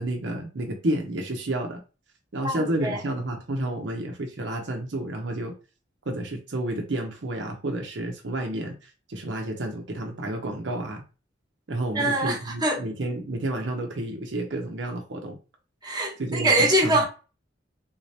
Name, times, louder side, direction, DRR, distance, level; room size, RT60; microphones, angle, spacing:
voice 1, 0.0-1.8 2.3-5.5 6.1-11.0 11.7-15.4 16.2-17.0, right 1 dB, 65° right, 0.7 m, -30 dB
voice 2, 2.4-3.0 11.9-12.8 15.8-17.0, right 1 dB, 20° right, 1.1 m, -23 dB
3.6 x 2.8 x 3.2 m
head